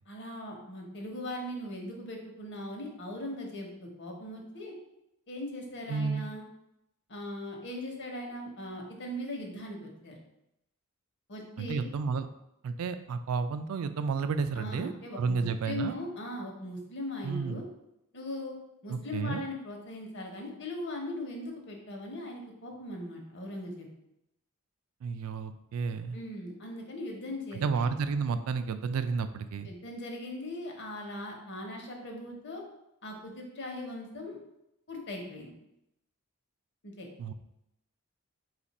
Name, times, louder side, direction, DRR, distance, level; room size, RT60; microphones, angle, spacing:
voice 1, 0.1-4.7 5.3-6.4 7.1-10.2 11.3-11.9 14.5-17.6 18.1-18.6 18.8-23.9 26.1-27.9 29.6-32.6 33.0-34.4 34.9-35.5 36.8-37.1, left 1 dB, 55° left, 1 dB, 0.9 m, -39 dB
voice 2, 5.9-6.2 11.6-12.3 12.6-15.9 17.2-17.6 18.9-19.4 25.0-26.2 27.5-29.7 37.2-37.3, right 5 dB, 70° right, 10 dB, 0.3 m, -31 dB
4.3 x 2.5 x 4.1 m, 0.83 s
head